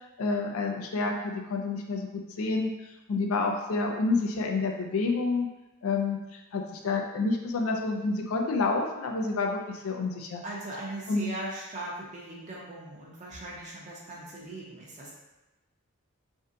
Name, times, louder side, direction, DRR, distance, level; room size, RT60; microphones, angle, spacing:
voice 1, 0.2-2.7 3.1-5.5 5.8-10.4 11.1-11.3, left 3 dB, 75° left, 2 dB, 0.4 m, -29 dB
voice 2, 10.4-15.1, right 1 dB, 35° right, -4 dB, 0.7 m, -39 dB
2.7 x 2.2 x 3.7 m, 1.0 s
head